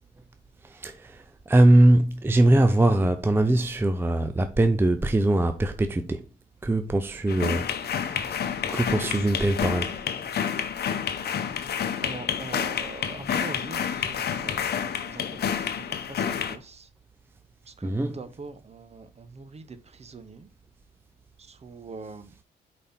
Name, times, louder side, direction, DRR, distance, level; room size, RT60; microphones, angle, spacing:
voice 1, 0.7-6.2 6.6-8.3 8.7-10.0 17.8-18.2, right 1 dB, 10° right, 0.5 m, -22 dB
sound 1, 7.3-16.6, left 8 dB, 55° left, 0.9 m, -29 dB
voice 2, 12.0-16.9 17.7-20.5 21.4-22.3, right 4 dB, 35° right, 0.9 m, -43 dB
5.0 x 4.2 x 5.8 m
cardioid pair, 90°, 20 cm